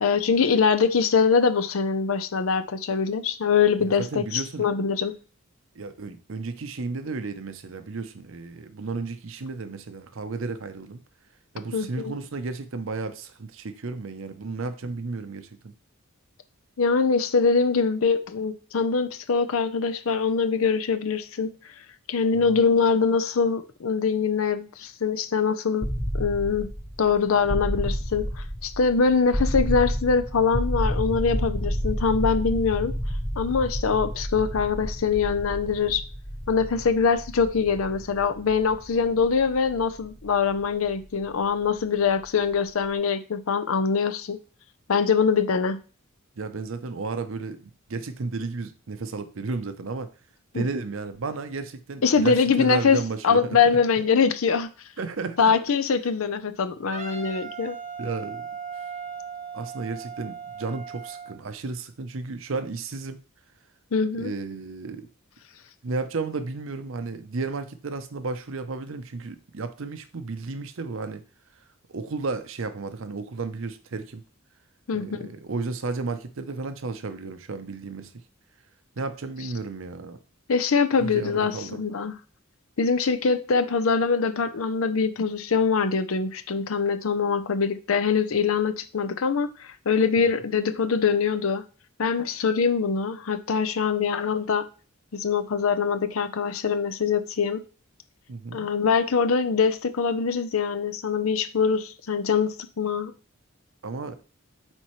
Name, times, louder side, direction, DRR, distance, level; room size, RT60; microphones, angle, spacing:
voice 1, 0.0-5.1 11.7-12.1 16.8-21.5 22.1-25.9 26.1-26.7 27.0-32.9 33.4-36.0 36.5-44.4 44.9-45.8 50.5-50.6 52.0-53.0 53.2-54.7 55.4-57.8 63.9-64.3 74.9-75.3 80.5-82.1 82.8-91.6 92.0-94.6 95.1-97.6 98.5-103.1, left 5 dB, 75° left, 0.6 m, -23 dB
voice 2, 3.9-4.7 5.7-11.0 11.5-15.7 22.3-22.6 46.4-50.1 50.5-53.6 55.0-55.5 58.0-58.5 59.5-63.2 64.2-65.1 65.8-71.2 71.9-74.2 74.9-78.1 79.0-80.2 81.0-81.8 90.2-90.4 98.3-98.7 103.8-104.2, right 3 dB, 70° right, 0.6 m, -33 dB
sound 1, 25.8-41.6, equal, 15° left, 0.7 m, -30 dB
Wind instrument woodwind instrument, 56.9-61.4, right 6 dB, 30° right, 0.9 m, -38 dB
8.7 x 4.1 x 3.1 m
head